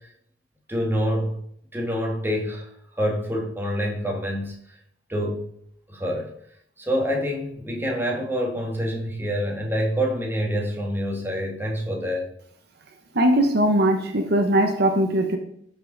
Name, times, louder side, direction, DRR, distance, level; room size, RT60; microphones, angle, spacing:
voice 1, 0.7-1.4 1.7-2.7 3.0-4.6 5.1-5.5 5.9-6.3 6.8-12.3, equal, 10° right, 0 dB, 2.0 m, -26 dB
voice 2, 13.1-15.4, right 1 dB, 60° right, 4 dB, 1.1 m, -20 dB
13.0 x 5.7 x 4.1 m, 0.68 s
head